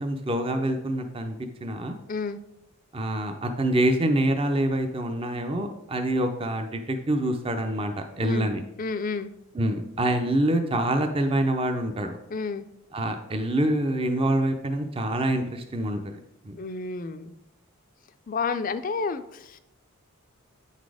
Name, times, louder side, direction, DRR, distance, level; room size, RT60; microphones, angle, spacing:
voice 1, 0.0-1.3 1.6-2.0 2.9-8.6 9.5-12.1 12.9-16.2 16.5-16.6, right 1 dB, 25° right, 6 dB, 0.5 m, -26 dB
voice 2, 2.1-2.4 8.2-8.5 8.8-9.3 12.3-12.7 16.6-17.3 18.3-19.6, left 4 dB, 35° left, 11 dB, 0.4 m, -30 dB
9.1 x 4.1 x 4.8 m, 0.85 s
head